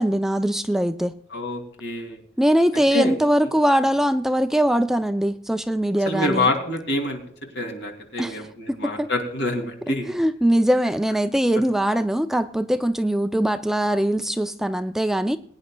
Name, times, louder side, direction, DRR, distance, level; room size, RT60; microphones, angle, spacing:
voice 1, 0.0-1.2 2.4-6.5 8.2-8.4 8.7-9.1 9.9-15.4, equal, ahead, 9 dB, 0.4 m, -21 dB
voice 2, 1.3-2.2 2.9-3.1 6.0-7.2 7.5-10.1, left 1 dB, 65° left, 3 dB, 2.6 m, -26 dB
22.0 x 9.7 x 2.2 m, 0.63 s
head